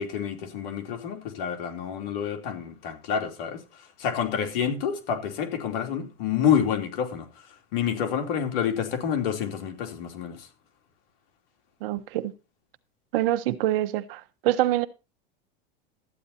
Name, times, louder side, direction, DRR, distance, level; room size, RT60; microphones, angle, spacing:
voice 1, 0.0-7.3 7.7-10.5, left 8 dB, 75° left, 3.3 m, -28 dB
voice 2, 11.8-12.3 13.1-14.9, right 14 dB, 70° right, 1.2 m, -25 dB
13.5 x 9.6 x 4.3 m
supercardioid pair, 120°, 29 cm